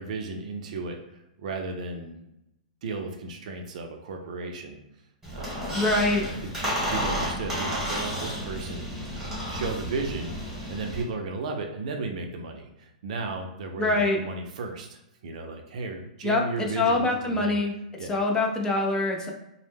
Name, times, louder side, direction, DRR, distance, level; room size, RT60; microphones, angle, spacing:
voice 1, 0.0-2.2 2.8-4.8 5.3-5.6 6.1-6.3 6.9-9.1 9.5-10.4 10.7-17.6 18.0-18.2, right 3 dB, 65° right, 4 dB, 0.5 m, -34 dB
Squeak, 5.2-11.0, equal, 10° right, 1.0 m, -31 dB
voice 2, 5.7-6.3 13.8-14.2 16.2-17.7 18.1-19.3, left 2 dB, 15° left, 1 dB, 0.4 m, -24 dB
2.1 x 2.0 x 3.4 m, 0.86 s
hypercardioid pair, 130°, 4 cm